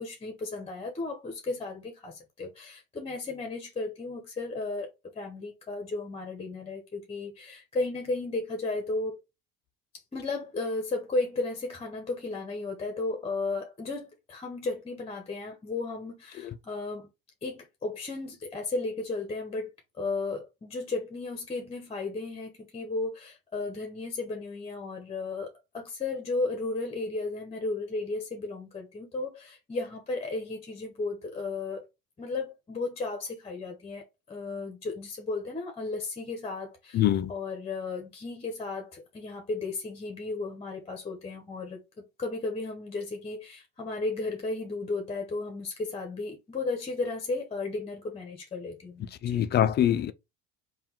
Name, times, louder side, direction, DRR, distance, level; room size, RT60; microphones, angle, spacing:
voice 1, 0.0-4.9 5.1-9.2 10.1-17.1 17.4-19.7 20.0-31.9 32.2-49.4, left 3 dB, 20° left, 0.9 m, -34 dB
voice 2, 36.9-37.3 49.2-50.1, left 11 dB, 35° left, 0.4 m, -24 dB
3.5 x 2.4 x 4.4 m
supercardioid pair, 95°, 30 cm